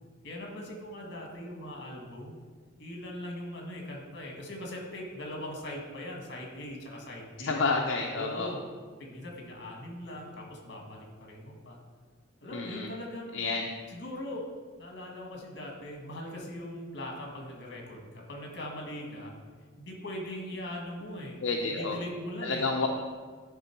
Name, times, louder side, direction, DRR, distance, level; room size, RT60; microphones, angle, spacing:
voice 1, 0.2-2.4 2.8-7.6 8.1-8.6 9.0-11.8 12.4-13.5 13.9-19.3 19.8-21.4 21.6-22.7, left 1 dB, 55° left, 0 dB, 1.6 m, -40 dB
voice 2, 7.4-8.5 12.5-12.9 13.3-13.7 21.4-22.0 22.4-22.9, left 3 dB, 70° left, 0 dB, 0.6 m, -29 dB
11.5 x 3.8 x 4.5 m, 1.5 s
head